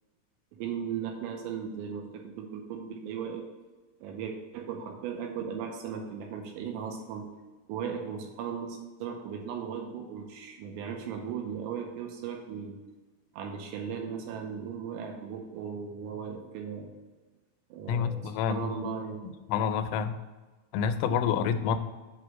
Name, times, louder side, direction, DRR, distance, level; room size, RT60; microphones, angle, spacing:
voice 1, 0.5-3.5 4.0-7.3 7.7-12.8 13.3-16.9 17.7-19.2, right 7 dB, 85° right, 2 dB, 2.8 m, -37 dB
voice 2, 17.9-18.8 19.2-20.2 20.7-21.8, left 7 dB, 90° left, 9 dB, 3.1 m, -28 dB
7.8 x 3.0 x 6.1 m, 1.3 s
omnidirectional pair, 5.6 m